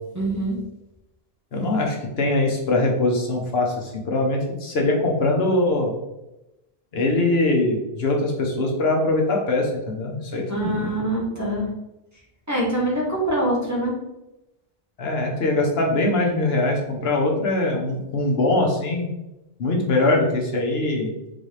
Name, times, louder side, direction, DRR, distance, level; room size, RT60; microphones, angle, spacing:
voice 1, 0.1-0.6 10.5-11.7 12.5-13.9, right 1 dB, 15° right, -5 dB, 1.2 m, -24 dB
voice 2, 1.5-5.9 6.9-10.7 15.0-19.1 19.6-21.1, left 2 dB, 75° left, 0 dB, 1.2 m, -22 dB
4.0 x 4.0 x 3.3 m, 0.92 s
omnidirectional pair, 1.1 m